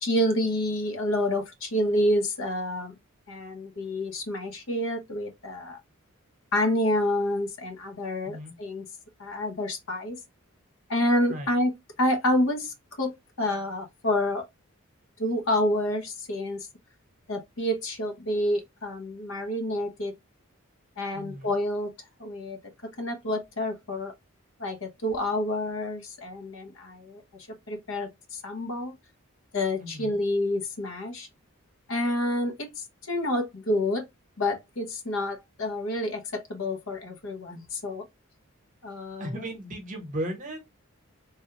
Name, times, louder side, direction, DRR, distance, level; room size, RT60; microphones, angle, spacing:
voice 1, 0.0-3.0 3.3-5.8 6.5-8.8 9.2-10.2 10.9-11.7 12.0-14.5 15.2-16.7 17.3-20.1 21.0-21.9 22.2-22.6 23.0-24.1 24.6-27.2 27.7-29.0 29.5-31.3 31.9-34.1 34.4-38.1 38.8-39.3, left 1 dB, 70° left, 0.8 m, -28 dB
voice 2, 21.1-21.5 29.8-30.2 39.2-40.6, right 1 dB, 35° right, 0.9 m, -35 dB
3.4 x 2.2 x 2.8 m
head